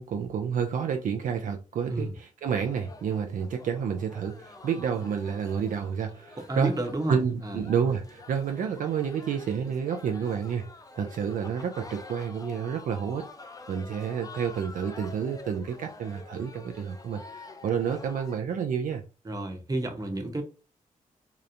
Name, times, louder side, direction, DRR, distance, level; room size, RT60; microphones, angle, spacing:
voice 1, 0.0-6.7 7.1-10.6 11.0-13.2 13.7-19.0, right 7 dB, 65° right, 0.4 m, -30 dB
sound 1, 2.6-18.4, left 3 dB, 25° left, 0.4 m, -47 dB
voice 2, 6.5-7.6 19.2-20.4, right 1 dB, 25° right, 0.8 m, -31 dB
2.8 x 2.0 x 2.5 m
supercardioid pair, 50°, 14 cm